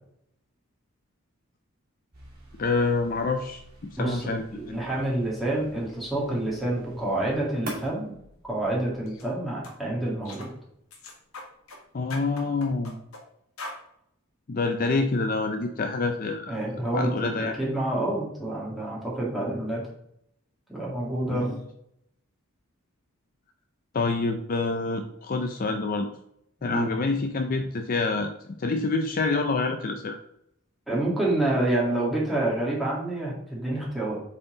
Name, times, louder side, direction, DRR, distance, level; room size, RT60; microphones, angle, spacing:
sound 1, 2.1-9.1, right 2 dB, 45° right, 2.6 m, -45 dB
voice 1, 2.6-3.6 3.9-4.8 11.9-13.0 14.5-16.6 16.9-17.6 21.3-21.6 23.9-26.1 26.6-30.2, left 3 dB, 40° left, 6 dB, 0.5 m, -27 dB
voice 2, 4.0-8.1 8.4-10.5 16.5-19.8 20.7-21.5 26.6-26.9 30.9-34.2, right 1 dB, ahead, -6 dB, 2.0 m, -28 dB
sound 2, 9.1-9.3 9.6-9.8 10.3-10.5 10.9-11.8 12.1-13.2 13.6-13.8, left 2 dB, 85° left, 1.4 m, -41 dB
7.8 x 4.2 x 3.8 m, 0.74 s
head